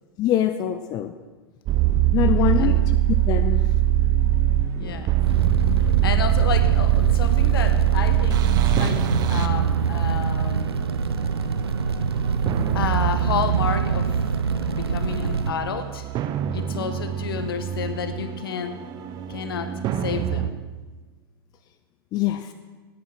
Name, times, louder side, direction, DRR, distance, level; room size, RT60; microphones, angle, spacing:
voice 1, 0.2-1.1 2.1-2.8 3.3-3.6 4.8-5.1 22.1-22.5, left 11 dB, 30° left, 9 dB, 0.8 m, -24 dB
sound 1, 1.7-20.5, right 12 dB, 30° right, 0.9 m, -23 dB
voice 2, 2.3-2.8 4.8-5.1 6.0-10.8 12.7-14.1 14.7-16.1 16.5-18.8 19.3-19.7 20.0-20.6, left 7 dB, 65° left, 9 dB, 1.6 m, -30 dB
Fire, 5.2-15.5, right 5 dB, 85° right, 1.0 m, -25 dB
17.0 x 9.5 x 6.2 m, 1.3 s
figure-of-eight pair, 105°, 13 cm